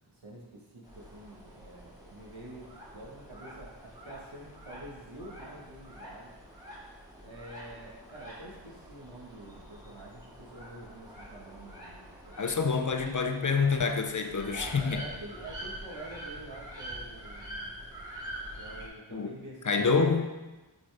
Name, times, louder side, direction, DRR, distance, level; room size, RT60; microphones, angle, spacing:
voice 1, 0.1-6.3 7.2-12.8 14.5-17.7 18.6-20.0, right 1 dB, 85° right, -3 dB, 1.4 m, -47 dB
sound 1, 0.8-18.9, right 1 dB, 10° right, 2.1 m, -46 dB
voice 2, 12.4-15.0 19.1-19.3 19.7-20.3, left 5 dB, 40° left, 6 dB, 0.6 m, -27 dB
6.1 x 5.3 x 3.4 m, 1.1 s
wide cardioid pair, 45°, 45 cm